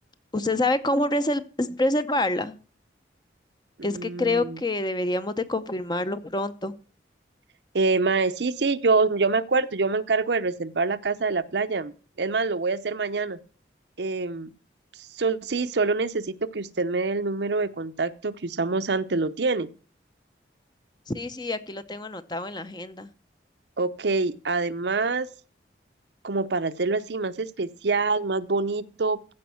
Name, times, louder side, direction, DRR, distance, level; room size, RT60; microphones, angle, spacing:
voice 1, 0.3-2.5 3.8-6.7 21.1-23.1, left 2 dB, 25° left, 0.7 m, -27 dB
voice 2, 3.9-4.6 7.7-11.9 12.2-13.4 14.0-14.5 15.0-19.7 23.8-25.3 26.2-29.2, right 3 dB, 75° right, 0.7 m, -25 dB
15.0 x 5.3 x 7.0 m
head